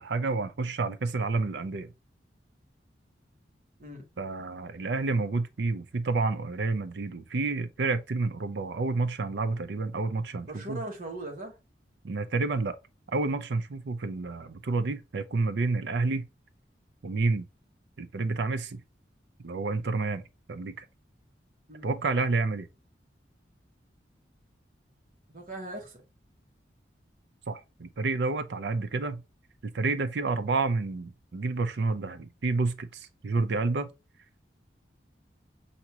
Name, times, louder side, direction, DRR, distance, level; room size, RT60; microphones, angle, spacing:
voice 1, 0.0-1.9 4.2-10.8 12.0-12.8 13.1-16.3 17.0-17.5 18.0-18.8 19.4-20.2 20.5-20.8 21.8-22.7 27.5-29.2 29.6-33.9, right 3 dB, 70° right, 0.5 m, -29 dB
voice 2, 10.5-11.6 21.7-21.9 25.3-26.0, right 1 dB, 50° right, 1.2 m, -39 dB
5.9 x 2.7 x 2.8 m
head